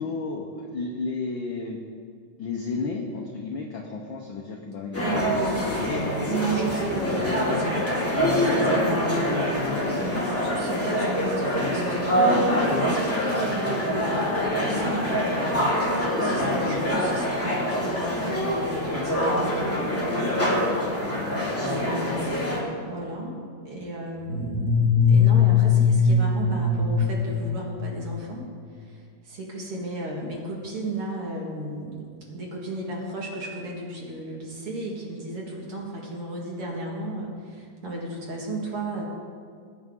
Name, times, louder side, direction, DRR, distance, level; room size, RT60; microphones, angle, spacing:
voice 1, 0.0-1.8 2.4-6.1 9.7-10.2 16.1-16.6 21.2-21.6, left 4 dB, 80° left, 0 dB, 1.1 m, -33 dB
sound 1, 4.9-22.6, equal, 5° left, 1.9 m, -25 dB
voice 2, 5.0-5.8 6.3-7.9 8.2-9.0 9.9-15.1 15.9-20.4 21.6-23.4 23.6-28.5 28.8-39.0, right 2 dB, 50° right, -2 dB, 2.6 m, -34 dB
sound 2, 24.2-28.3, left 5 dB, 70° right, 3.2 m, -21 dB
20.0 x 9.5 x 3.8 m, 2.1 s
omnidirectional pair, 3.6 m